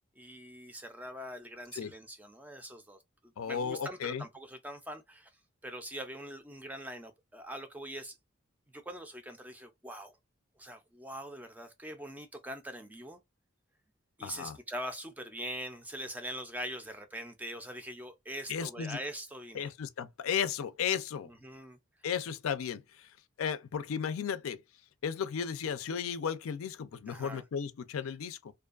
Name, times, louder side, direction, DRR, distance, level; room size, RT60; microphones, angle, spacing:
voice 1, 0.2-3.0 3.5-5.3 5.6-8.2 8.7-10.2 10.6-13.2 14.2-19.7 21.2-21.8 27.1-27.4, equal, 10° right, 0.4 m, -43 dB
voice 2, 3.4-4.2 14.2-14.6 18.5-19.0 19.5-21.3 22.0-23.1 23.4-24.6 25.0-28.5, left 7 dB, 85° left, 0.4 m, -34 dB
2.5 x 2.3 x 2.3 m
head